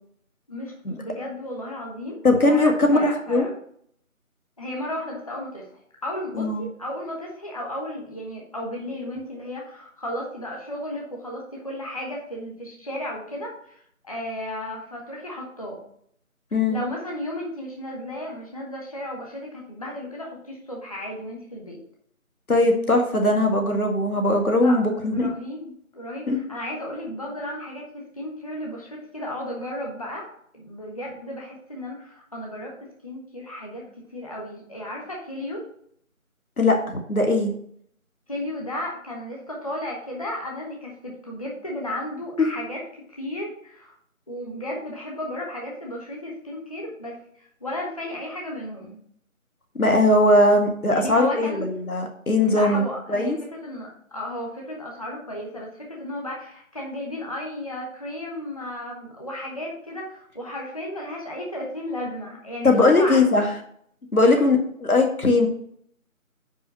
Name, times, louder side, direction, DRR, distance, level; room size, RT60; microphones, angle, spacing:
voice 1, 0.5-2.2 2.5-3.5 4.6-5.6 6.0-15.8 16.7-21.8 24.6-24.8 25.0-30.3 30.5-33.8 34.1-35.7 38.3-43.9 44.3-49.0 50.9-51.7 52.4-63.4 64.2-64.5, left 1 dB, 25° left, -2 dB, 1.2 m, -34 dB
voice 2, 2.2-3.0 3.3-3.5 6.3-6.7 16.5-16.8 22.5-25.3 26.3-26.4 36.6-36.8 37.1-37.5 42.4-42.5 49.8-52.8 53.1-53.4 62.6-63.5 64.1-65.5, left 2 dB, 85° left, 3 dB, 2.0 m, -19 dB
5.5 x 5.0 x 6.0 m, 0.66 s
figure-of-eight pair, 170°, 42 cm